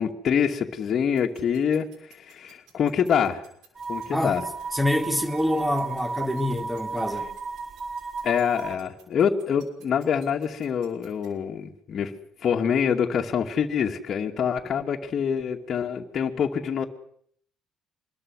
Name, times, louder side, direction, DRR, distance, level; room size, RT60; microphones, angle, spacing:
voice 1, 0.0-3.4 3.9-4.4 8.2-12.1 12.4-16.8, left 7 dB, 55° left, 2.4 m, -25 dB
sound 1, 1.2-11.3, right 8 dB, 75° right, 6.4 m, -54 dB
sound 2, 3.8-8.7, right 4 dB, 40° right, 3.6 m, -34 dB
voice 2, 4.7-7.3, left 1 dB, 5° right, 4.6 m, -26 dB
26.5 x 21.5 x 6.5 m
hypercardioid pair, 55°, 0 cm